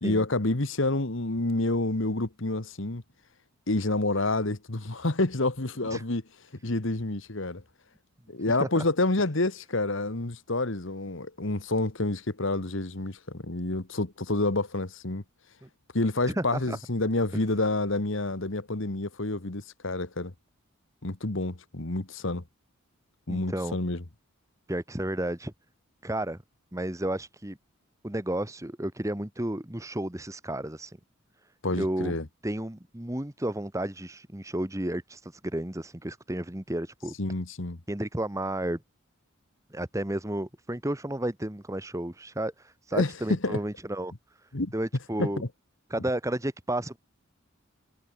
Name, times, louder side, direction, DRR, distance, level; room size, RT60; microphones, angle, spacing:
voice 1, 0.0-3.0 3.7-6.2 6.6-7.6 8.3-15.2 15.9-20.3 21.0-22.4 23.3-24.0 31.6-32.3 37.2-37.8 42.9-43.6 44.5-44.7 45.2-45.5, left 2 dB, 60° left, 1.6 m, -28 dB
voice 2, 16.3-16.8 23.3-23.8 24.7-25.5 26.0-26.4 26.7-27.6 28.0-31.0 31.8-32.1 32.4-37.1 37.9-38.8 39.7-44.1 44.7-45.4 45.9-47.0, right 1 dB, 15° right, 1.2 m, -32 dB
head